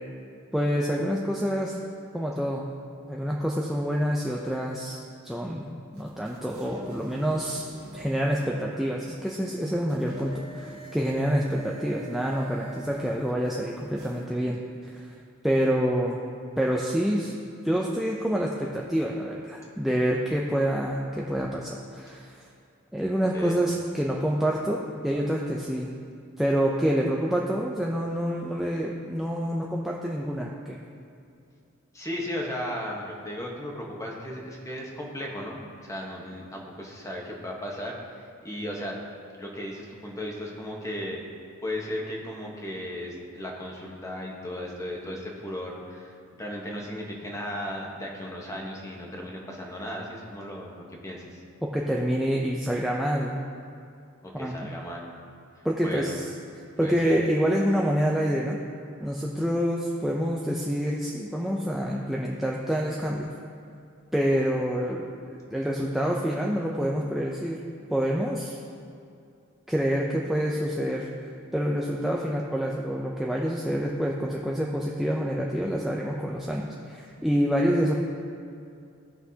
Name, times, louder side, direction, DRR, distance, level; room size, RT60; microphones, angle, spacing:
voice 1, 0.5-1.8 2.1-2.7 3.1-5.0 5.2-7.7 7.9-15.1 15.4-16.2 16.6-17.3 17.6-22.4 22.9-25.9 26.4-30.8 51.6-53.4 54.3-54.7 55.6-56.3 56.8-58.6 59.0-63.3 64.1-65.1 65.5-67.6 67.9-68.6 69.7-71.1 71.5-78.0, equal, ahead, -2 dB, 0.4 m, -27 dB
sound 1, 5.9-14.2, right 2 dB, 85° right, 1.3 m, -45 dB
voice 2, 31.9-38.9 39.4-41.2 41.6-51.4 54.2-55.1 55.8-56.2 56.8-57.2, left 1 dB, 15° left, -2 dB, 1.1 m, -36 dB
16.0 x 5.8 x 2.8 m, 2.5 s
head